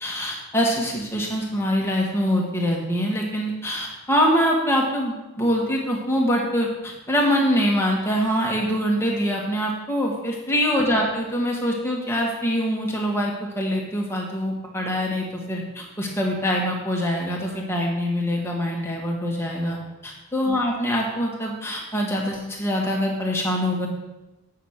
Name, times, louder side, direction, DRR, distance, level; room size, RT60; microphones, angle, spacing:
voice 1, 0.0-23.9, equal, 10° left, -2 dB, 1.7 m, -24 dB
9.0 x 5.8 x 6.6 m, 1.1 s
head